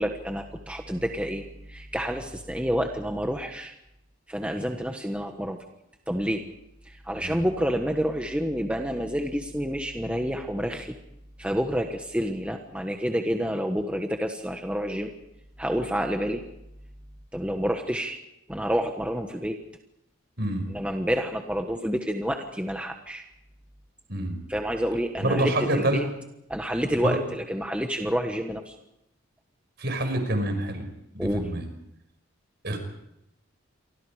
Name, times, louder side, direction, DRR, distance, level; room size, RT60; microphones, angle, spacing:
voice 1, 0.0-3.7 4.3-5.6 6.1-6.4 6.8-11.0 11.4-15.1 15.6-16.4 17.3-18.2 18.5-19.6 20.7-23.2 24.5-26.0 26.5-28.7 31.2-31.5, equal, 5° right, 3 dB, 1.4 m, -29 dB
voice 2, 25.2-26.0 27.0-27.2 29.8-30.9 31.1-31.7 32.6-32.8, right 1 dB, 50° right, 6 dB, 5.5 m, -26 dB
29.0 x 24.5 x 5.0 m, 0.82 s
head